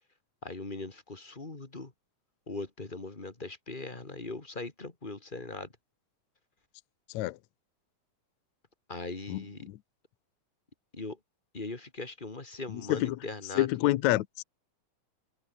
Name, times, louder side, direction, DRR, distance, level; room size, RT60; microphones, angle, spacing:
voice 1, 0.4-1.9 2.5-5.7 8.9-9.7 10.9-11.2 11.5-13.7, left 3 dB, 15° left, 2.2 m, -40 dB
voice 2, 9.3-9.8 12.7-13.2 13.6-14.4, left 16 dB, 75° left, 2.0 m, -28 dB
omnidirectional pair, 3.8 m